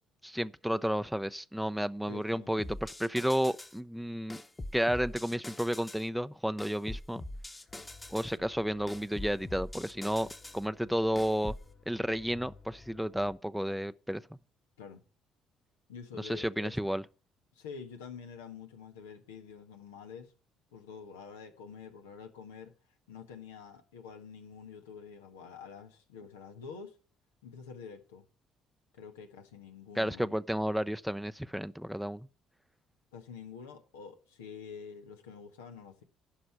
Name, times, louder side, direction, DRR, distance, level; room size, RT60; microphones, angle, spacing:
voice 1, 0.2-4.4 4.7-7.2 8.1-11.6 11.9-14.2 16.2-17.0 30.0-32.3, equal, ahead, 0.5 m, -32 dB
voice 2, 2.1-2.5 14.8-15.0 15.9-16.8 17.5-20.3 20.7-22.7 23.1-27.0 27.4-28.2 28.9-30.3 33.1-36.0, left 6 dB, 85° left, 1.3 m, -47 dB
sound 1, 2.6-3.8 4.3-6.1 6.6-8.3 8.9-10.6 11.2-11.7, left 1 dB, 20° left, 1.2 m, -43 dB
sound 2, 7.7-13.4, left 4 dB, 50° left, 2.6 m, -56 dB
11.5 x 5.1 x 8.1 m
hypercardioid pair, 55°, 0 cm